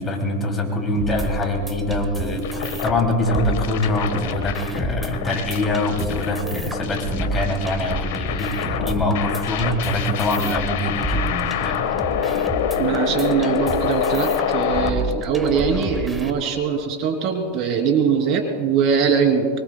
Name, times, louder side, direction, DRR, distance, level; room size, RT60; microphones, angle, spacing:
voice 1, 0.0-11.9, left 1 dB, 20° left, 1 dB, 2.9 m, -24 dB
sound 1, 0.9-16.3, right 2 dB, 10° right, 1.2 m, -30 dB
sound 2, 2.4-14.9, left 9 dB, 70° left, 1.4 m, -27 dB
voice 2, 12.8-19.5, right 6 dB, 45° right, 2 dB, 3.2 m, -21 dB
24.0 x 24.0 x 2.3 m, 2.4 s
supercardioid pair, 130°, 0 cm